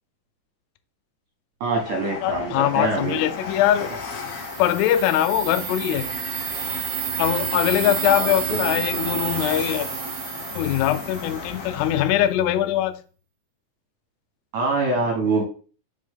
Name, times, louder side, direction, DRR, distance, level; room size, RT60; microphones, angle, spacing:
voice 1, 1.6-3.2 8.1-8.6 14.5-15.4, right 3 dB, 60° right, 2.2 m, -24 dB
Train, 1.8-12.3, left 5 dB, 65° left, 1.7 m, -35 dB
voice 2, 2.2-3.9 4.6-6.1 7.2-9.9 10.6-13.0, left 12 dB, 90° left, 2.7 m, -22 dB
sound 1, 3.8-11.7, right 10 dB, 80° right, 2.4 m, -31 dB
5.3 x 5.1 x 3.6 m
omnidirectional pair, 4.6 m